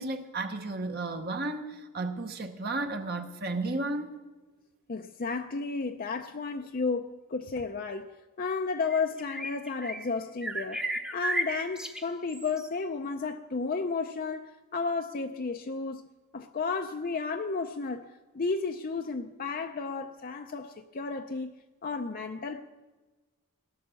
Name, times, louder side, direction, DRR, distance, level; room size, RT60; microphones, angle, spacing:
voice 1, 0.0-4.1, right 2 dB, 45° right, 0.9 m, -33 dB
voice 2, 4.9-10.8 11.1-16.1 16.3-21.5 21.8-22.6, left 4 dB, 40° left, 0.5 m, -33 dB
sound 1, 8.9-10.2 10.4-12.7, right 1 dB, 5° right, 0.7 m, -34 dB
18.0 x 10.5 x 6.9 m
head